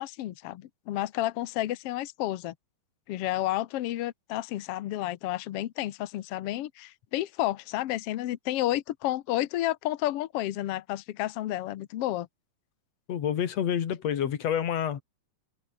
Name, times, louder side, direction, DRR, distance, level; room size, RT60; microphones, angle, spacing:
voice 1, 0.0-2.5 3.1-12.3, left 14 dB, 75° left, 1.3 m, -31 dB
voice 2, 13.1-15.0, left 9 dB, 55° left, 2.8 m, -28 dB
omnidirectional pair, 3.8 m